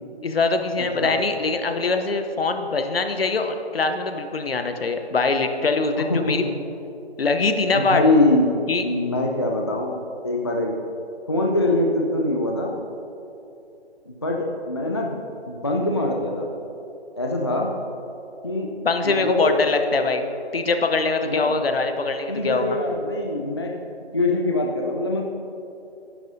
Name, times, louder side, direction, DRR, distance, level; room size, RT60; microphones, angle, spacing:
voice 1, 0.2-6.4 7.2-8.0 8.7-8.8 18.8-20.2 20.5-22.8, left 3 dB, 60° left, 7 dB, 0.9 m, -23 dB
voice 2, 6.0-6.4 7.7-8.5 8.8-10.8 11.3-12.7 14.1-15.2 15.5-16.5 17.2-17.7 18.4-18.7 19.0-19.6 21.2-21.5 22.3-23.7 24.1-25.3, left 2 dB, 25° left, 0 dB, 0.4 m, -23 dB
13.0 x 10.5 x 2.7 m, 2.8 s
figure-of-eight pair, 150°, 33 cm